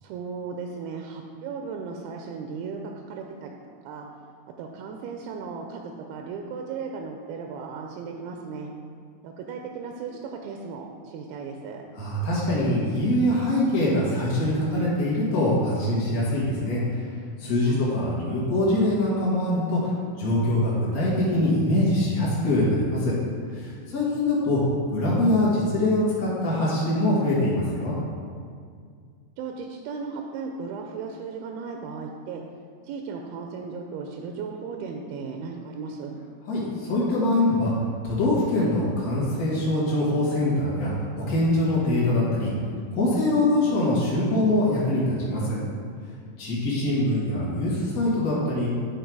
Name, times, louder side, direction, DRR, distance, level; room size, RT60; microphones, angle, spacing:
voice 1, 0.0-2.8 3.1-3.5 3.9-4.1 4.6-8.7 9.2-11.8 17.7-17.9 29.4-32.4 32.8-36.2, right 5 dB, 80° right, 2 dB, 2.2 m, -36 dB
voice 2, 11.9-17.1 17.4-23.1 23.5-24.6 24.9-27.9 36.5-37.7 38.0-40.9 41.2-42.5 42.9-45.6 46.4-48.7, left 1 dB, 75° left, -7 dB, 0.8 m, -23 dB
10.0 x 4.0 x 4.6 m, 2.1 s
omnidirectional pair, 4.7 m